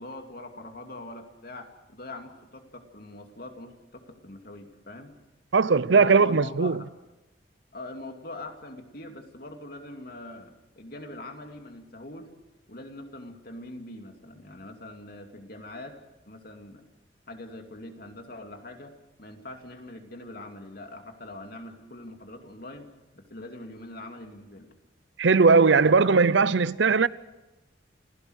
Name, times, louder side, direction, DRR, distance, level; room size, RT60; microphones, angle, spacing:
voice 1, 0.0-5.2 5.9-6.9 7.7-12.4 12.7-16.0 16.3-16.8 17.3-18.9 19.2-22.9 23.1-24.7 25.8-26.1, left 2 dB, 55° left, 2.6 m, -43 dB
voice 2, 5.5-6.8 25.2-27.1, right 4 dB, 75° right, 0.7 m, -19 dB
29.0 x 16.5 x 6.5 m
head